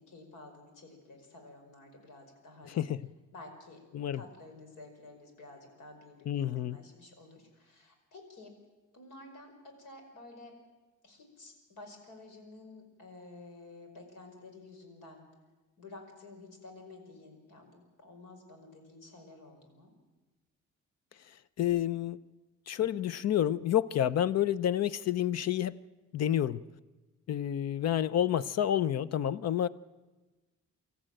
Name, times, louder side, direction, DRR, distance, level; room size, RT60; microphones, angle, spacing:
voice 1, 0.0-2.9 3.3-3.8 4.1-8.6 8.9-10.5 11.0-15.2 15.8-19.9, left 2 dB, 85° left, 4 dB, 5.2 m, -51 dB
voice 2, 2.7-3.0 3.9-4.2 6.3-6.8 21.6-22.2 22.7-25.8 26.1-26.6 27.3-29.7, left 11 dB, 60° left, 18 dB, 0.6 m, -29 dB
25.5 x 14.0 x 9.0 m, 1.2 s
wide cardioid pair, 165°, 30 cm